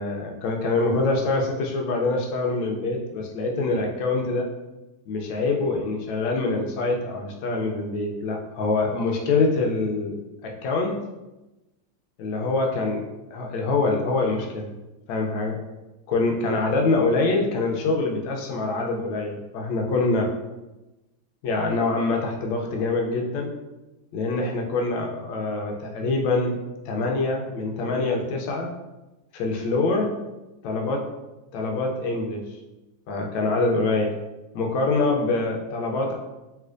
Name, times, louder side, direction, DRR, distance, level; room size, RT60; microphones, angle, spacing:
voice 1, 0.0-4.5 5.1-11.0 12.2-13.0 13.3-14.8 15.1-15.6 16.1-20.3 21.4-23.5 24.1-26.6 26.9-28.7 29.3-30.1 30.6-31.1 31.5-32.5 33.1-34.1 34.5-36.1, left 3 dB, 75° left, 1 dB, 1.2 m, -25 dB
3.2 x 3.1 x 2.4 m, 1.0 s
omnidirectional pair, 2.4 m